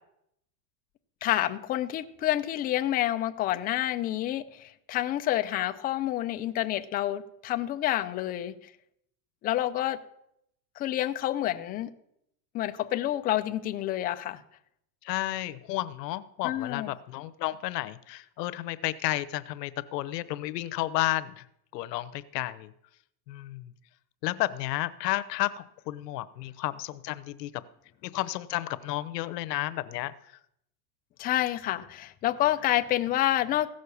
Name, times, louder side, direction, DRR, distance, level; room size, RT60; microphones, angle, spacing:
voice 1, 1.2-8.5 9.4-10.0 10.8-11.9 12.5-14.4 16.4-16.9 31.2-33.7, left 13 dB, 20° left, 9 dB, 0.4 m, -28 dB
voice 2, 15.0-21.4 21.7-22.7 23.3-23.7 24.2-27.6 28.0-30.1, left 16 dB, 80° left, 14 dB, 0.9 m, -32 dB
16.0 x 6.5 x 6.9 m, 0.76 s
supercardioid pair, 145°, 48 cm